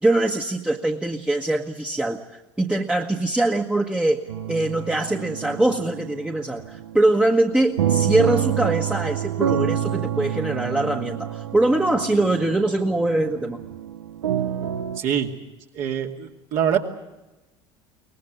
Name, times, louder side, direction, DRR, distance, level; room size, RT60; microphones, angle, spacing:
voice 1, 0.0-2.2 2.6-4.2 4.5-13.6, right 2 dB, 5° right, 2 dB, 1.4 m, -22 dB
sound 1, 4.3-15.0, right 10 dB, 80° right, 0.7 m, -28 dB
voice 2, 15.0-15.3 15.7-16.8, right 9 dB, 55° right, 2 dB, 2.4 m, -24 dB
23.5 x 19.0 x 8.1 m, 1.0 s
figure-of-eight pair, 70°, 15 cm